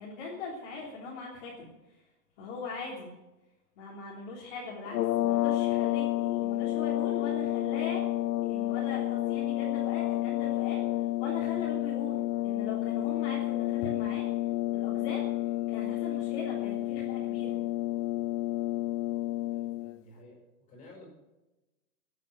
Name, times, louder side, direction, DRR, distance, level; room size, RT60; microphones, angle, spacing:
voice 1, 0.0-1.7 2.4-3.1 3.8-8.1 8.4-10.8 11.2-14.3 14.7-15.2 15.7-17.6, left 3 dB, 35° left, -5 dB, 3.5 m, -40 dB
sound 1, 4.9-20.0, left 15 dB, 90° left, 0.5 m, -30 dB
voice 2, 19.5-20.4 20.7-21.1, left 1 dB, 15° left, -1 dB, 6.1 m, -52 dB
15.5 x 9.1 x 7.8 m, 1.0 s
hypercardioid pair, 170°, 46 cm